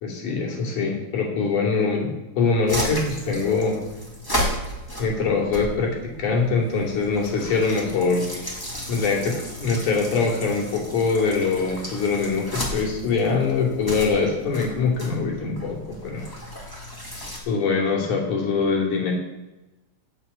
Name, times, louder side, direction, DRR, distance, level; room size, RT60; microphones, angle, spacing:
voice 1, 0.0-3.8 5.0-8.3 8.9-16.2 17.5-19.1, left 4 dB, 75° left, -1 dB, 4.3 m, -23 dB
sound 1, 2.7-17.4, equal, 10° left, 1.9 m, -34 dB
11.0 x 7.4 x 8.2 m, 1.0 s
omnidirectional pair, 3.5 m